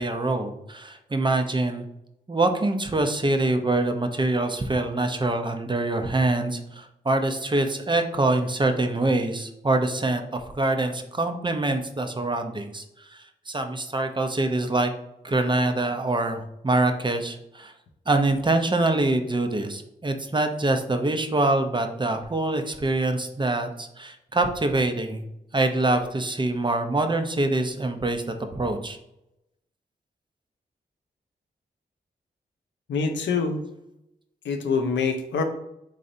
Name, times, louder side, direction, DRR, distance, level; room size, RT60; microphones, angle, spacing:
voice 1, 0.0-1.8 2.3-12.8 13.1-14.9 15.2-17.7 18.1-25.2 25.5-28.2 28.5-29.0, right 2 dB, 25° right, 6 dB, 0.5 m, -25 dB
voice 2, 32.9-33.6 34.4-35.4, left 5 dB, 85° left, 5 dB, 0.5 m, -25 dB
3.8 x 3.1 x 2.6 m, 0.84 s
cardioid pair, 45°, 18 cm